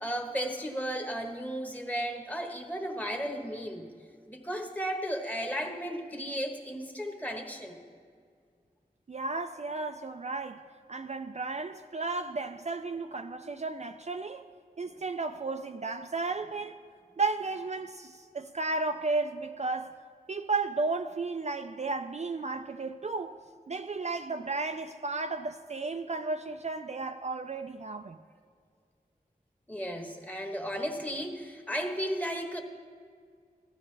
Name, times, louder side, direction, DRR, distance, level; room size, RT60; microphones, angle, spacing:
voice 1, 0.0-3.9 4.3-7.8 29.7-32.6, equal, 10° left, 1.2 m, -34 dB
voice 2, 9.1-10.6 10.9-14.5 14.8-16.8 17.2-19.9 20.3-23.4 23.7-28.2, right 3 dB, 45° right, 0.4 m, -33 dB
15.5 x 12.0 x 3.3 m
wide cardioid pair, 60°, 16 cm